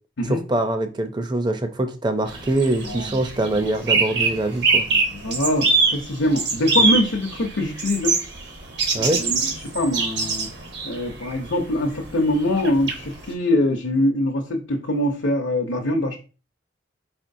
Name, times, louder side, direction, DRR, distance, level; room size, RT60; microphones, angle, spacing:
voice 1, 0.3-4.9 6.8-6.9 8.9-9.2, right 1 dB, 20° right, 0.5 m, -24 dB
sound 1, 2.3-13.3, right 4 dB, 60° right, 1.0 m, -24 dB
voice 2, 2.8-3.2 4.9-8.1 8.9-10.5 10.8-16.2, left 1 dB, 80° left, 0.7 m, -23 dB
4.6 x 4.3 x 2.6 m
head